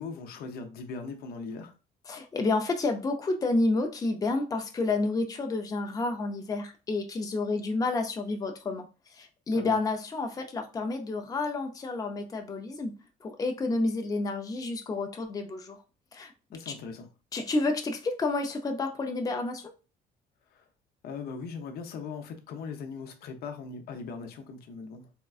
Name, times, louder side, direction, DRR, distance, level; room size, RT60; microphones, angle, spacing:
voice 1, 0.0-1.7 9.5-9.8 16.5-17.1 20.5-20.7 21.0-25.1, left 5 dB, 70° left, 0.6 m, -39 dB
voice 2, 2.1-8.9 9.1-13.0 13.2-15.8 16.1-16.3 16.7-16.8 17.3-19.6, left 3 dB, 20° left, 0.5 m, -30 dB
3.5 x 2.2 x 2.4 m
cardioid pair, 110°, 17 cm